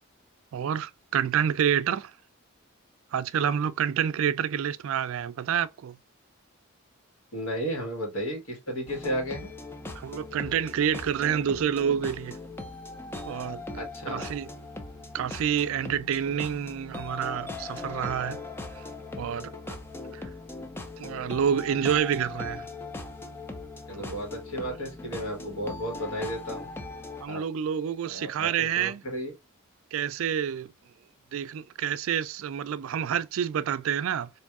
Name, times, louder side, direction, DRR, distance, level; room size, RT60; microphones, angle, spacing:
voice 1, 0.5-2.1 3.1-6.0 10.0-12.4 13.3-13.6 14.1-14.5 15.1-18.4 18.8-18.9 19.2-19.8 20.1-20.3 21.0-22.7 24.0-24.2 27.2-29.0 29.9-30.7 31.3-34.3, right 8 dB, 70° right, 0.3 m, -28 dB
voice 2, 7.3-9.5 13.7-14.3 23.9-26.7 27.3-27.4 28.0-29.3, equal, 85° left, 1.6 m, -33 dB
sound 1, 8.9-27.3, left 2 dB, 10° left, 0.3 m, -40 dB
4.3 x 2.6 x 2.3 m
head